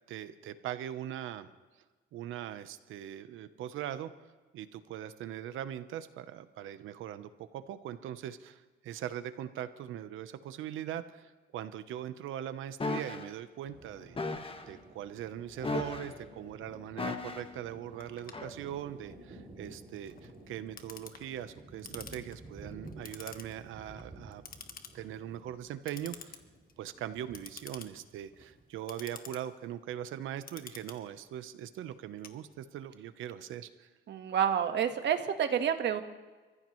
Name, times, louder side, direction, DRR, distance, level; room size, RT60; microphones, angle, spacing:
voice 1, 0.1-1.5 2.1-4.1 4.5-14.2 14.7-24.4 24.9-26.4 26.8-33.9, right 11 dB, 85° right, 11 dB, 1.0 m, -41 dB
sound 1, 12.8-13.3 14.2-14.6 15.6-16.2 17.0-17.6 18.3-18.5, left 3 dB, 25° left, 1.5 m, -35 dB
sound 2, 13.7-28.7, right 2 dB, 30° right, 7.3 m, -53 dB
Clock, 18.0-32.9, left 6 dB, 45° left, 1.5 m, -51 dB
voice 2, 34.1-36.0, right 8 dB, 65° right, 7 dB, 1.5 m, -29 dB
28.5 x 15.0 x 3.2 m, 1.3 s
cardioid pair, 90°, 20 cm